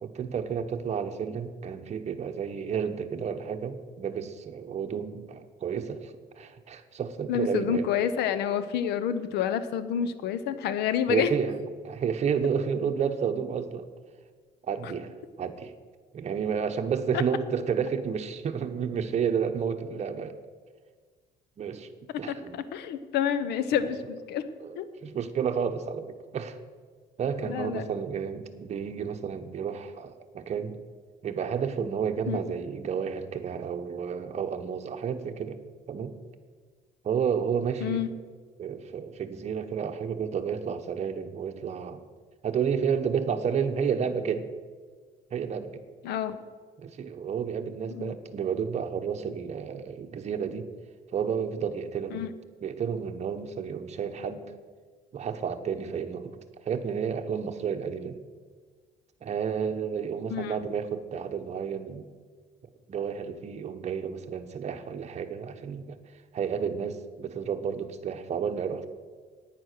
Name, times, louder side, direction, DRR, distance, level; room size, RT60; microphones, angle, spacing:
voice 1, 0.0-7.9 11.1-13.9 14.6-15.7 16.1-20.3 21.6-21.9 22.2-22.6 23.8-23.9 24.6-26.6 27.2-30.8 31.2-35.6 35.9-36.1 37.0-38.0 38.6-42.0 42.4-44.5 45.3-45.8 46.8-50.7 51.1-52.2 52.6-54.4 55.1-56.4 56.6-58.2 59.2-62.1 62.9-66.0 66.3-68.9, right 7 dB, 40° right, 6 dB, 1.0 m, -31 dB
voice 2, 7.3-11.3 14.8-14.9 22.3-24.4 24.8-24.9 27.4-27.8 32.3-32.4 37.8-38.1 46.0-46.4 47.9-48.2 52.1-52.3 60.3-60.6, left 8 dB, 80° left, 12 dB, 0.9 m, -28 dB
9.6 x 9.4 x 6.6 m, 1.5 s
cardioid pair, 110°, 17 cm